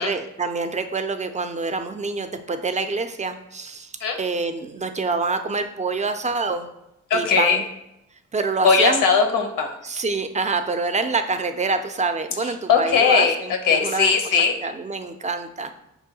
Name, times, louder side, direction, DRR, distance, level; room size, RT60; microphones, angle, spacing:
voice 1, 0.0-6.7 7.1-7.7 8.3-9.0 9.8-14.1 14.6-15.7, right 3 dB, 20° right, 8 dB, 0.4 m, -26 dB
voice 2, 7.1-7.6 8.6-9.7 12.7-13.4 13.6-14.5, left 5 dB, 80° left, 4 dB, 0.7 m, -18 dB
5.6 x 2.3 x 2.7 m, 0.87 s
supercardioid pair, 50°, 32 cm